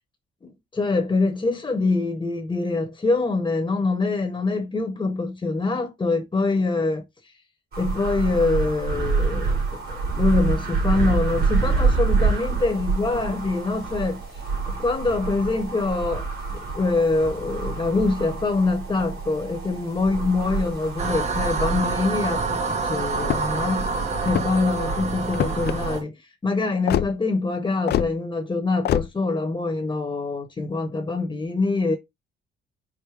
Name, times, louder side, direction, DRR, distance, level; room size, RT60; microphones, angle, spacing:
voice 1, 0.4-7.0 7.8-23.9 24.2-32.0, left 3 dB, 20° left, 1.0 m, -25 dB
sound 1, 7.7-26.0, right 4 dB, 50° right, 2.2 m, -27 dB
sound 2, 21.0-26.0, right 4 dB, 35° right, 0.9 m, -27 dB
sound 3, 23.2-23.6 24.2-24.7 25.3-25.8 26.9-27.1 27.9-28.1 28.8-29.1, left 11 dB, 55° left, 0.4 m, -24 dB
5.0 x 2.1 x 4.8 m
cardioid pair, 90°, 20 cm